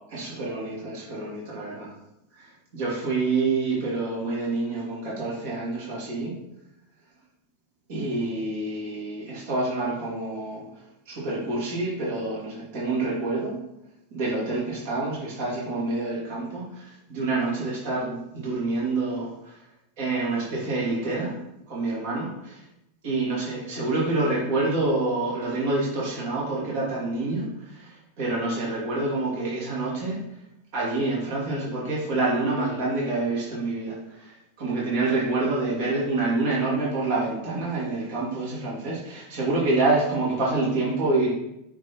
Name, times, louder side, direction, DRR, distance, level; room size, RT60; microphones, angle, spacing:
voice 1, 0.1-1.9 2.3-6.4 7.9-10.6 11.1-13.6 14.1-19.6 20.0-21.3 21.7-22.6 23.0-30.2 30.7-41.3, right 2 dB, 55° right, -5 dB, 2.7 m, -27 dB
5.9 x 4.8 x 4.5 m, 0.84 s
supercardioid pair, 150°, 0 cm